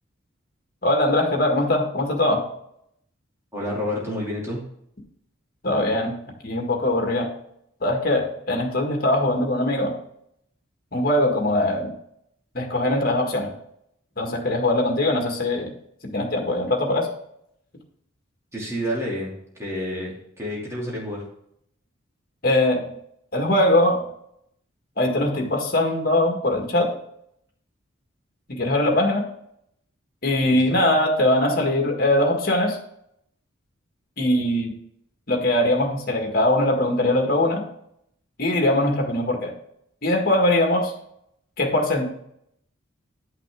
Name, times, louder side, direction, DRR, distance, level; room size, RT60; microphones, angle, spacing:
voice 1, 0.8-2.4 5.6-6.2 6.4-7.3 7.8-10.0 10.9-11.9 12.5-13.5 14.2-15.7 16.1-17.1 22.4-22.9 23.3-24.0 25.0-26.9 28.6-29.2 30.2-32.8 34.2-34.7 35.3-37.7 38.4-39.5 40.0-40.9 41.6-42.1, left 1 dB, 45° left, 1 dB, 1.8 m, -21 dB
voice 2, 3.5-4.6 18.5-19.3 19.6-20.1 20.4-21.2 30.5-30.8, equal, 15° right, -5 dB, 2.6 m, -29 dB
11.0 x 5.8 x 3.5 m, 0.73 s
head